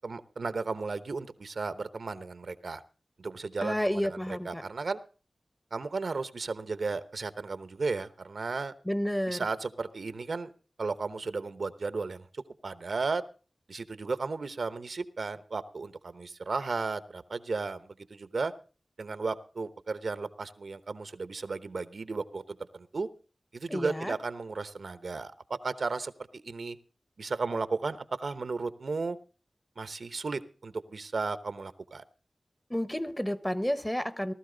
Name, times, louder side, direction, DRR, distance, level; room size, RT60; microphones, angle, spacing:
voice 1, 0.0-2.8 3.2-5.0 5.7-8.7 9.3-10.5 10.8-13.2 13.7-18.5 19.0-22.4 22.7-23.1 23.5-26.1 26.4-26.8 27.2-29.2 29.8-32.0, right 4 dB, 80° right, 13 dB, 0.9 m, -34 dB
voice 2, 3.6-4.6 8.8-9.4 23.7-24.1 32.7-34.3, equal, 10° left, 13 dB, 1.2 m, -30 dB
18.5 x 12.5 x 3.9 m, 0.36 s
wide cardioid pair, 50°, 0 cm